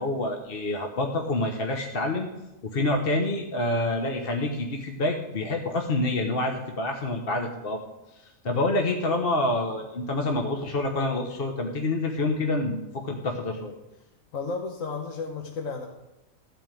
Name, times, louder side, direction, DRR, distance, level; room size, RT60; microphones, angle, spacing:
voice 1, 0.0-2.3 2.6-7.8 8.1-13.8, left 2 dB, 45° left, 3 dB, 1.2 m, -27 dB
voice 2, 14.3-15.9, left 4 dB, 65° left, 3 dB, 1.4 m, -33 dB
14.5 x 4.9 x 9.0 m, 0.96 s
omnidirectional pair, 1.5 m